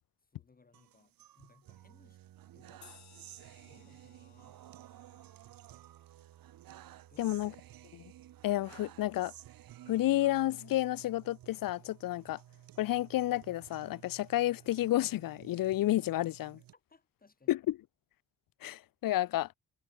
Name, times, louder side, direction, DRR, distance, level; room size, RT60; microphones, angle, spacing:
voice 1, 0.2-2.2 2.5-2.9 3.6-5.3 7.1-7.4 16.7-17.6, left 4 dB, 25° left, 3.6 m, -65 dB
sound 1, 0.7-16.7, right 13 dB, 90° right, 1.2 m, -54 dB
sound 2, 2.8-7.7, left 9 dB, 55° left, 2.1 m, -63 dB
voice 2, 7.2-7.5 7.9-8.0 8.4-9.3 9.9-12.4 12.8-16.6 17.5-17.6 18.6-19.5, left 15 dB, 75° left, 0.6 m, -31 dB
wide cardioid pair, 140°, 34 cm